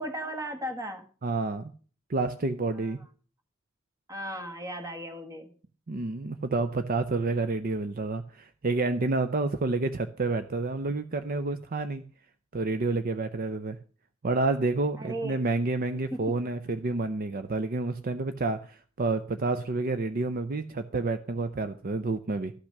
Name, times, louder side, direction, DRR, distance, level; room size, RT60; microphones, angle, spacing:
voice 1, 0.0-1.1 2.7-3.0 4.1-5.5 15.0-15.4 15.9-16.3, right 1 dB, 15° right, 6 dB, 1.4 m, -36 dB
voice 2, 1.2-1.7 2.1-3.0 5.9-12.0 12.5-13.8 14.2-22.5, right 3 dB, 45° right, 10 dB, 0.5 m, -29 dB
13.5 x 6.0 x 6.5 m, 0.40 s
head